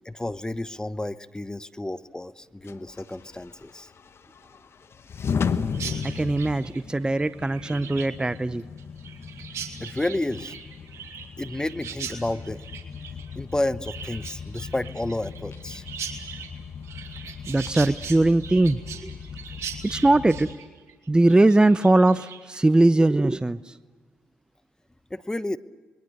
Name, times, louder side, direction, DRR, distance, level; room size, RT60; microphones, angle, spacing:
voice 1, 0.1-3.9 9.8-10.5 11.4-12.7 13.3-15.8 25.1-25.6, left 1 dB, 15° left, 14 dB, 1.0 m, -31 dB
sound 1, 2.6-20.5, left 6 dB, 55° left, 1.1 m, -36 dB
Chirp tweet, 5.7-22.6, right 7 dB, 70° right, 3.2 m, -40 dB
voice 2, 6.0-8.6 17.5-19.1 19.8-20.5 21.1-23.8, right 2 dB, 15° right, 14 dB, 0.7 m, -20 dB
27.5 x 22.5 x 6.6 m, 1.4 s
supercardioid pair, 55°, 5 cm